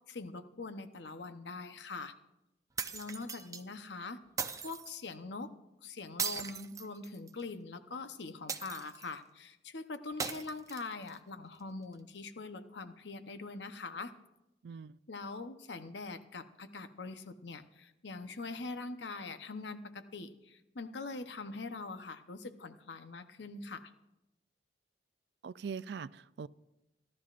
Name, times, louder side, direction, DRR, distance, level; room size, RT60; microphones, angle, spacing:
voice 1, 0.1-2.1 2.9-4.2 4.6-5.5 5.8-14.1 15.1-23.9, left 3 dB, 75° left, 0.9 m, -43 dB
sound 1, 2.8-3.6 4.4-5.0 6.2-7.4 8.5-9.1 10.2-11.1, right 6 dB, 20° right, 0.5 m, -38 dB
voice 2, 14.6-15.0 25.4-26.5, right 6 dB, 65° right, 0.4 m, -42 dB
28.0 x 12.0 x 2.5 m
head